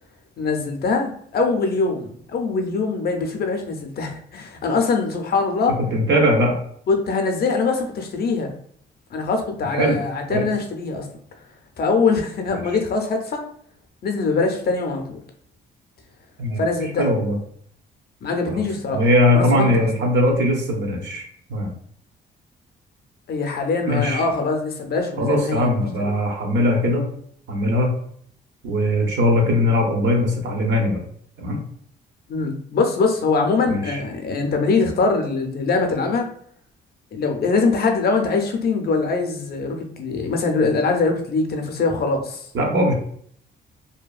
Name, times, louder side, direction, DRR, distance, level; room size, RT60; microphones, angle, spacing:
voice 1, 0.4-5.8 6.9-8.5 9.1-11.1 11.8-13.5 14.0-15.2 16.6-17.1 18.2-19.1 19.3-19.9 23.3-26.1 32.3-36.3 37.1-42.5, left 4 dB, 50° left, 4 dB, 0.5 m, -23 dB
voice 2, 5.9-6.6 9.7-10.0 10.3-10.5 12.5-12.6 16.4-16.6 17.0-17.4 18.5-18.6 18.9-21.2 21.5-21.7 23.9-24.2 25.2-27.1 27.5-27.9 28.6-31.0 31.4-31.6 33.7-34.0 42.5-42.9, left 1 dB, 70° right, 0 dB, 0.8 m, -20 dB
2.7 x 2.2 x 2.4 m, 0.62 s
cardioid pair, 90°, 20 cm